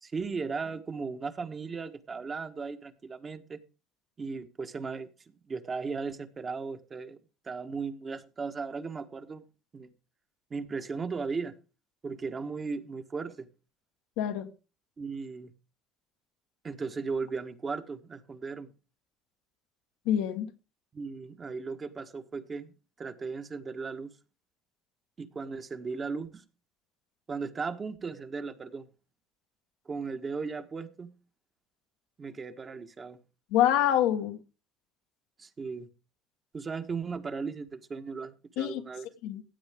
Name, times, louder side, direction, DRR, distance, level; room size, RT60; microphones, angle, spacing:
voice 1, 0.0-3.6 4.2-5.1 5.5-7.2 7.4-9.4 9.7-9.9 10.5-11.5 12.0-13.5 15.0-15.5 16.6-18.7 20.9-24.1 25.2-26.4 27.3-28.9 29.8-31.1 32.2-33.2 35.4-35.9 36.5-39.1, right 4 dB, 35° right, 1.4 m, -36 dB
voice 2, 14.2-14.5 20.0-20.5 33.5-34.4 38.6-38.8 39.2-39.4, left 11 dB, 80° left, 1.5 m, -26 dB
16.0 x 8.3 x 3.6 m
supercardioid pair, 75°, 0 cm